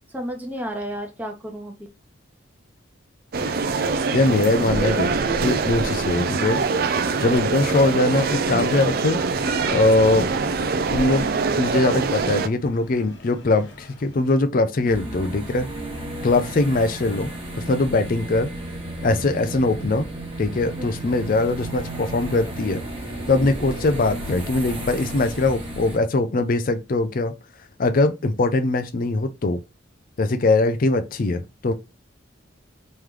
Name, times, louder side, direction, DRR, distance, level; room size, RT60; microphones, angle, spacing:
voice 1, 0.1-1.8 14.8-16.1 20.7-21.2 23.3-23.6, equal, 10° right, 0.8 m, -34 dB
sound 1, 3.3-12.5, right 4 dB, 50° right, 0.4 m, -24 dB
voice 2, 4.1-5.1 5.4-6.6 7.2-9.2 9.7-10.3 10.9-11.3 11.6-15.7 16.2-18.5 19.0-20.1 20.4-22.8 23.3-27.3 27.8-29.6 30.2-31.7, left 2 dB, 45° left, 0.4 m, -21 dB
sound 2, 7.7-14.4, left 1 dB, 60° left, 1.0 m, -45 dB
sound 3, 14.8-26.0, right 1 dB, 25° right, 1.2 m, -33 dB
3.2 x 3.1 x 3.6 m
head